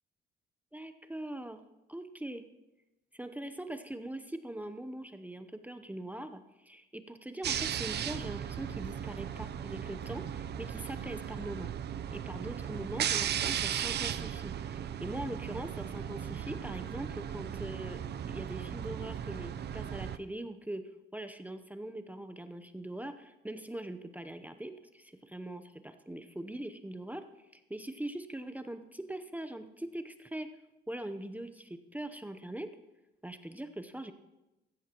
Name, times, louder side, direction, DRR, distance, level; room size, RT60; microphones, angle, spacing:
voice 1, 0.7-1.6 1.9-2.4 3.1-11.7 12.1-18.0 18.3-20.8 21.1-27.2 27.5-30.5 30.9-32.7 33.2-34.1, right 1 dB, 10° right, 9 dB, 0.7 m, -42 dB
sound 1, 7.4-20.2, right 9 dB, 55° right, 0.6 m, -36 dB
15.0 x 13.5 x 3.0 m, 1.0 s
cardioid pair, 90°, 20 cm